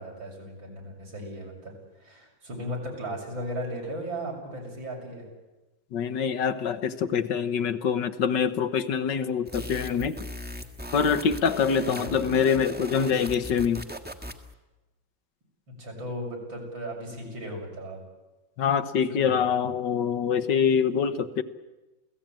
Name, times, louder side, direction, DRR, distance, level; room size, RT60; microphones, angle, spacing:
voice 1, 0.0-5.3 11.8-12.3 15.8-18.0 19.1-19.6, equal, 80° right, 1 dB, 7.6 m, -36 dB
voice 2, 5.9-10.2 10.9-13.8 18.6-21.4, left 7 dB, 70° left, 11 dB, 1.7 m, -25 dB
sound 1, 9.5-14.5, equal, 5° right, 1.4 m, -38 dB
28.5 x 17.5 x 9.0 m, 1.1 s
omnidirectional pair, 2.1 m